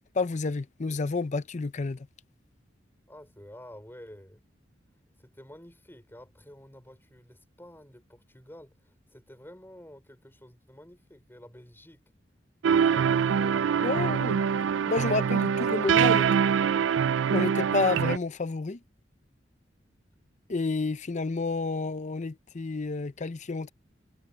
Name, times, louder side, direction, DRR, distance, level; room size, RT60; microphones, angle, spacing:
voice 1, 0.1-2.1 13.8-14.4 14.9-16.2 17.3-18.8 20.5-23.7, left 3 dB, 40° left, 0.5 m, -30 dB
voice 2, 3.1-4.4 5.2-12.0 12.7-14.3 14.8-15.5 15.8-16.9, equal, 10° left, 5.4 m, -50 dB
sound 1, 12.6-18.2, right 7 dB, 90° right, 0.4 m, -24 dB
head